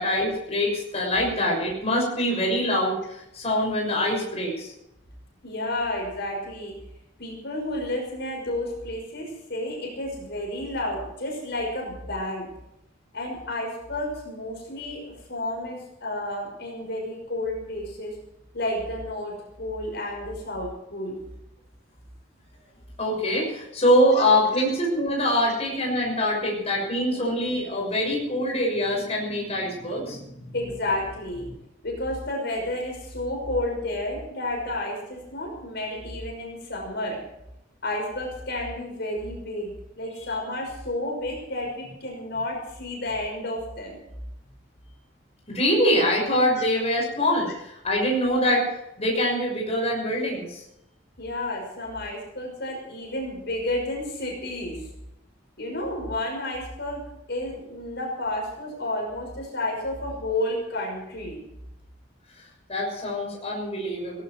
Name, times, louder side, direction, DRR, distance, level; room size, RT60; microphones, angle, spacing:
voice 1, 0.0-4.7 23.0-30.2 45.5-48.7 49.0-50.6 62.7-64.2, equal, 35° left, -1 dB, 6.4 m, -24 dB
voice 2, 5.4-6.7 7.2-12.5 13.1-18.2 18.5-21.2 24.2-24.3 24.5-24.6 27.1-27.4 30.5-31.5 31.8-37.2 37.8-44.0 46.6-46.7 47.5-47.6 51.2-54.9 55.6-61.4, left 1 dB, 60° left, 0 dB, 5.9 m, -31 dB
18.5 x 17.0 x 4.6 m, 0.85 s
head